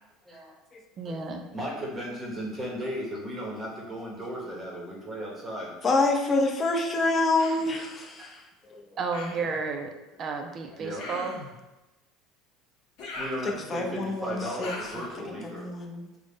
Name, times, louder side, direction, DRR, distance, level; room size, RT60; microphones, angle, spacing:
voice 1, 1.0-1.4 9.0-9.9 10.2-11.3, right 4 dB, 35° right, 4 dB, 0.3 m, -32 dB
voice 2, 1.5-5.7 8.2-8.3 10.8-11.0 13.2-15.7, equal, 20° right, -4 dB, 0.8 m, -35 dB
voice 3, 5.8-8.8 13.0-13.1 13.4-15.1 15.4-16.0, left 2 dB, 30° left, 1 dB, 0.5 m, -27 dB
Human voice, 7.4-7.7 9.1-9.6 11.0-11.5 13.0-13.9 14.6-15.1, left 2 dB, 60° left, 1.0 m, -40 dB
3.8 x 2.0 x 3.4 m, 1.0 s
supercardioid pair, 130°, 0 cm